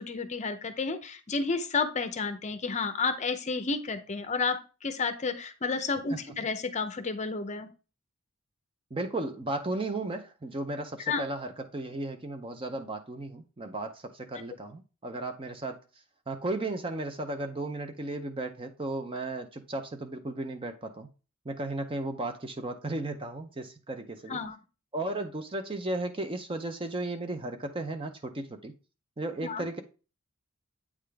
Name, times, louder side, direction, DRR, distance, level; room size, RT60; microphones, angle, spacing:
voice 1, 0.0-7.7 11.1-11.2 24.3-24.6 29.4-29.7, left 4 dB, 30° left, 8 dB, 0.6 m, -31 dB
voice 2, 8.9-15.8 16.3-21.1 21.4-24.4 24.9-28.7 29.2-29.8, right 2 dB, 25° right, 7 dB, 0.5 m, -35 dB
8.4 x 3.7 x 3.4 m, 0.33 s
head